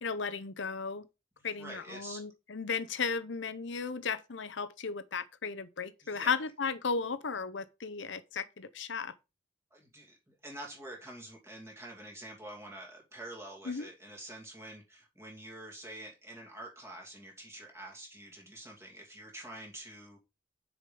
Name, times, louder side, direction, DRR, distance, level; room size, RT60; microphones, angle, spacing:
voice 1, 0.0-1.0 1.4-9.1 13.7-13.9, left 5 dB, 80° left, 0.8 m, -35 dB
voice 2, 1.4-2.2 6.0-6.4 9.7-20.2, right 1 dB, 15° right, 2.5 m, -47 dB
6.7 x 5.1 x 5.3 m
head